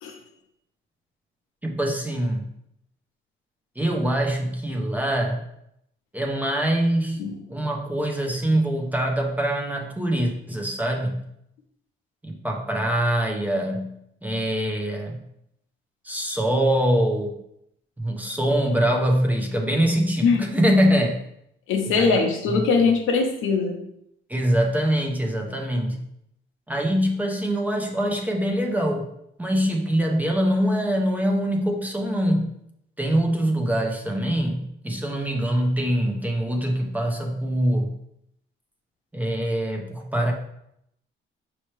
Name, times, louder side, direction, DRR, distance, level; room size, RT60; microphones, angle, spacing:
voice 1, 1.6-2.5 3.8-5.4 6.1-7.2 7.5-11.2 12.2-14.0 14.2-15.2 16.0-17.4 18.0-21.3 21.9-22.2 22.5-22.9 24.3-26.1 26.7-29.1 29.4-32.5 33.0-38.0 39.1-40.3, right 1 dB, 10° right, 1 dB, 0.5 m, -24 dB
voice 2, 21.7-23.8, left 4 dB, 80° left, 3 dB, 0.8 m, -21 dB
5.5 x 2.9 x 3.1 m, 0.76 s
cardioid pair, 135°, 21 cm